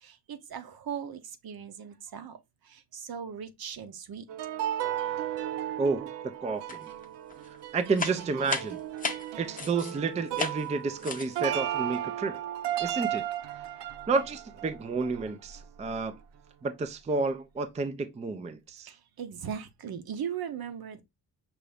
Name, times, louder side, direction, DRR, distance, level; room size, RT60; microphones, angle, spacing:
voice 1, 0.0-2.4 2.7-4.2 18.9-21.0, right 8 dB, 65° right, 0.8 m, -38 dB
sound 1, 4.3-15.6 15.9-16.0, right 11 dB, 85° right, 0.6 m, -35 dB
voice 2, 5.8-6.9 7.5-8.8 9.4-12.4 12.8-13.2 14.1-16.2 16.6-18.9, right 4 dB, 20° right, 0.4 m, -31 dB
sound 2, 6.7-7.0 7.3-10.0 10.3-10.7 11.0-11.4, left 5 dB, 20° left, 0.6 m, -35 dB
5.7 x 2.6 x 3.3 m
wide cardioid pair, 135°, 40 cm